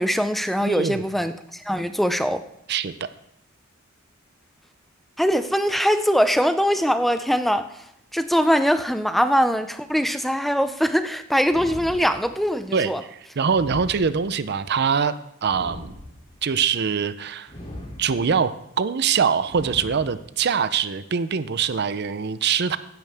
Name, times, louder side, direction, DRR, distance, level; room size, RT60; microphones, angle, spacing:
voice 1, 0.0-2.4 5.2-7.7 8.1-13.0, equal, ahead, 10 dB, 0.4 m, -22 dB
voice 2, 0.6-1.0 2.7-3.1 12.7-15.9 16.4-17.5 18.0-18.5 18.8-22.8, right 6 dB, 55° right, 14 dB, 0.5 m, -23 dB
sound 1, 11.5-12.5 13.4-14.5 15.4-16.5 17.5-18.5 19.4-20.5, left 1 dB, 25° left, 2.8 m, -39 dB
15.5 x 10.5 x 3.5 m, 0.77 s
head